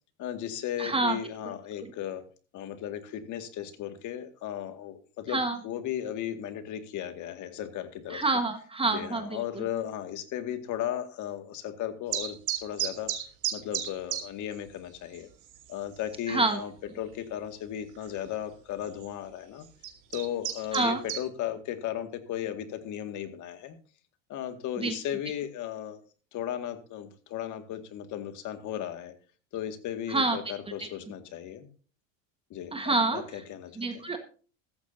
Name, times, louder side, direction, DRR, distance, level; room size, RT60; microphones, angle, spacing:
voice 1, 0.2-2.2 2.5-8.2 8.9-13.1 13.5-15.3 15.7-16.7 17.0-19.7 20.1-23.8 24.3-26.0 26.3-29.1 29.5-31.7 32.5-33.7, left 10 dB, 50° left, 8 dB, 2.1 m, -36 dB
voice 2, 0.8-1.2 1.8-1.9 5.3-5.6 8.1-9.7 16.3-16.6 20.7-21.0 24.8-25.0 30.1-30.4 30.8-30.9 32.7-33.4 33.8-34.2, right 3 dB, 15° right, 7 dB, 1.4 m, -28 dB
sound 1, 12.1-14.2 14.5-14.6 15.1-15.2 15.5-15.9 16.5-16.6 18.0-18.1 18.8-19.1 19.6-21.2, right 11 dB, 50° right, 2.6 m, -32 dB
15.0 x 14.0 x 2.7 m, 0.38 s
supercardioid pair, 115°, 39 cm